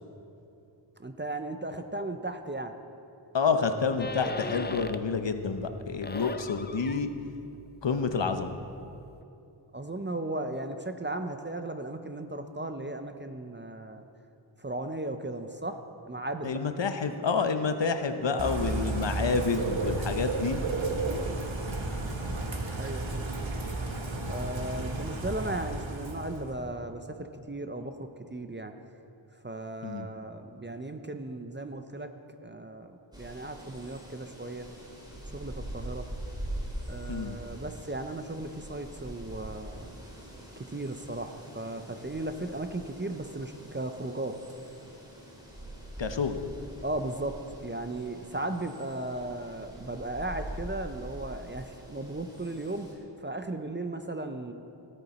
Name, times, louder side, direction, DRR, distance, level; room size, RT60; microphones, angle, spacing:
voice 1, 1.0-2.7 6.9-7.1 9.7-14.0 14.6-15.8 16.0-16.6 21.0-21.3 22.8-23.2 24.3-28.7 29.4-32.1 32.4-34.7 35.3-36.1 36.9-40.0 40.7-44.4 46.8-47.4 47.6-52.9 53.2-54.5, right 2 dB, 25° right, 7 dB, 0.5 m, -36 dB
voice 2, 3.3-7.1 7.8-8.6 16.4-20.6 29.8-30.1 37.1-37.4 46.0-46.4, left 5 dB, 65° left, 8 dB, 0.8 m, -28 dB
sound 1, 4.0-5.2 5.6-9.2, left 4 dB, 25° left, 0.4 m, -40 dB
Bird / Rain, 18.4-26.5, right 2 dB, 70° right, 1.2 m, -33 dB
sound 2, 33.1-52.9, right 1 dB, 10° right, 2.7 m, -43 dB
17.0 x 6.9 x 4.2 m, 2.7 s
wide cardioid pair, 55°, 48 cm